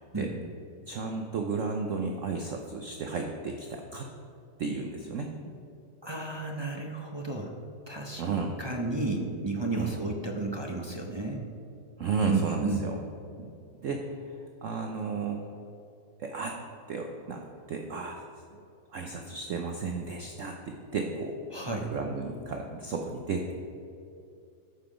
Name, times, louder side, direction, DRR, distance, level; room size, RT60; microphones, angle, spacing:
voice 1, 0.9-4.1 4.6-5.3 8.2-8.5 9.7-10.0 12.0-13.0 13.4-13.5 13.8-15.4 16.2-16.6 16.9-18.2 18.9-21.4 21.7-23.5, right 4 dB, 60° right, 3 dB, 0.9 m, -33 dB
voice 2, 6.0-7.5 7.9-8.2 8.6-11.4 12.2-12.9 21.5-21.9, right 3 dB, 30° right, 0 dB, 0.4 m, -32 dB
13.5 x 5.7 x 5.0 m, 2.6 s
omnidirectional pair, 1.9 m